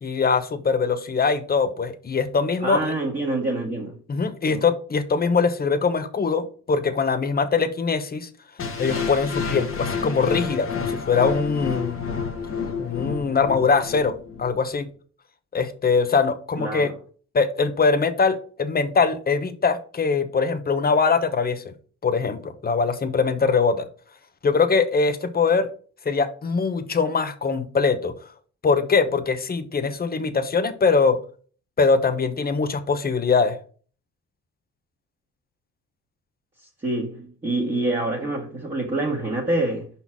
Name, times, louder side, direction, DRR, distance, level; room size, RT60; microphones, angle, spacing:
voice 1, 0.0-2.9 4.1-8.3 8.8-12.0 12.8-14.1 14.4-14.9 15.5-16.9 17.3-21.7 22.0-23.8 24.4-25.7 26.0-28.1 28.6-31.2 31.8-33.5, left 5 dB, 30° left, 1.0 m, -22 dB
voice 2, 2.6-4.0 4.5-4.6 16.6-16.9 36.8-39.9, right 2 dB, 25° right, 1.9 m, -26 dB
sound 1, 8.6-14.6, left 5 dB, 45° left, 1.5 m, -29 dB
5.4 x 4.2 x 6.0 m
cardioid pair, 90°, 30 cm